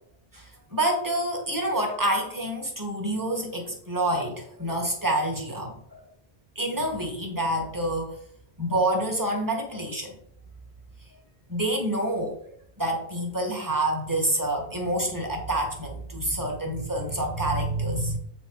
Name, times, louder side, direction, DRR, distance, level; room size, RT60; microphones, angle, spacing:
voice 1, 0.3-6.0 6.6-8.2 8.6-10.2 11.5-12.4 12.8-18.2, right 1 dB, 20° right, 1 dB, 1.7 m, -27 dB
8.1 x 4.5 x 4.8 m, 0.66 s
omnidirectional pair, 1.0 m